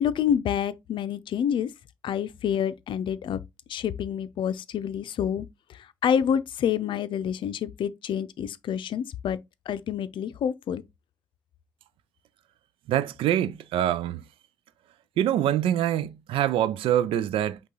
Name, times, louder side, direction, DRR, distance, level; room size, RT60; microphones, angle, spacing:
voice 1, 0.0-1.7 2.0-3.4 3.7-5.5 6.0-9.4 9.7-10.8, left 8 dB, 60° left, 0.6 m, -27 dB
voice 2, 12.9-14.2 15.2-17.6, right 11 dB, 70° right, 0.4 m, -25 dB
5.4 x 2.4 x 3.9 m
supercardioid pair, 60°, 9 cm